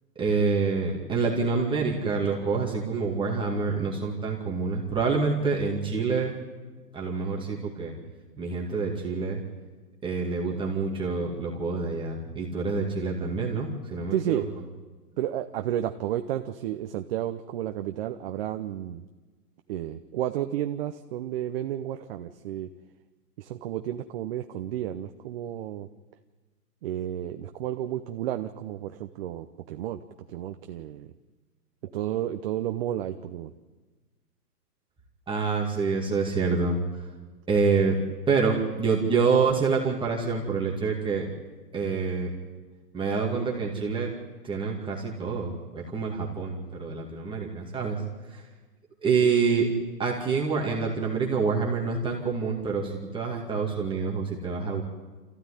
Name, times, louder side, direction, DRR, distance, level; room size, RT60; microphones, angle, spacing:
voice 1, 0.2-6.4 6.9-7.9 8.4-9.4 10.0-14.4 35.3-37.1 37.5-38.0 38.3-41.3 41.7-42.3 42.9-44.1 44.4-48.0 48.3-48.4 49.0-49.7 50.0-54.8, right 4 dB, 10° right, -2 dB, 2.3 m, -27 dB
voice 2, 14.1-14.5 15.2-19.0 19.7-22.7 23.4-25.9 26.8-30.0 30.3-31.1 31.9-33.5, right 12 dB, 35° right, 7 dB, 0.8 m, -32 dB
25.5 x 15.0 x 10.0 m, 1.3 s
hypercardioid pair, 150°, 47 cm